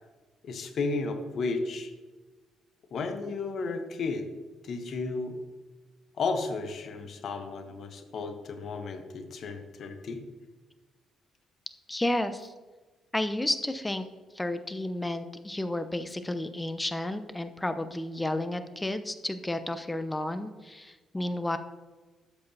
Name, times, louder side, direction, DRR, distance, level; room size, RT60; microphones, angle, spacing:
voice 1, 0.4-1.9 2.9-4.3 4.6-5.4 6.2-10.2, left 3 dB, 60° left, 7 dB, 1.0 m, -33 dB
voice 2, 11.9-12.5 13.1-14.0 14.3-21.6, left 1 dB, 15° left, 10 dB, 0.8 m, -32 dB
12.0 x 7.8 x 2.8 m, 1.3 s
hypercardioid pair, 45°, 0 cm